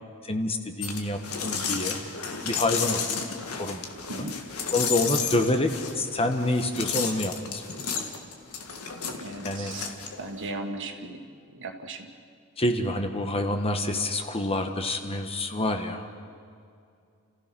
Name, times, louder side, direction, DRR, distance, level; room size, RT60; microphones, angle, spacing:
voice 1, 0.2-2.0 2.4-3.0 3.6-3.8 4.2-4.3 4.7-7.6 9.4-9.7 12.6-16.1, left 1 dB, 25° left, 6 dB, 1.3 m, -27 dB
sound 1, 0.8-10.5, left 6 dB, 75° left, 1.9 m, -32 dB
voice 2, 9.2-12.1, right 2 dB, 60° right, 4 dB, 1.9 m, -37 dB
29.5 x 15.5 x 6.1 m, 2.4 s
head